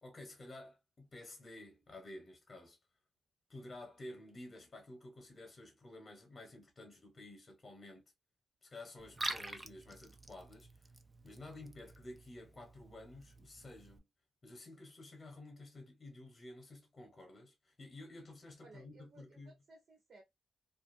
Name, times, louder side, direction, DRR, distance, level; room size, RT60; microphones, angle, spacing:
voice 1, 0.0-2.8 3.5-8.0 8.6-10.9 11.2-14.0 14.4-19.5, left 2 dB, 30° left, 0.9 m, -52 dB
Liquid, 9.0-14.0, right 2 dB, 15° right, 0.3 m, -47 dB
voice 2, 18.6-20.2, right 3 dB, 55° right, 0.8 m, -60 dB
2.4 x 2.3 x 2.5 m
wide cardioid pair, 135°, 0 cm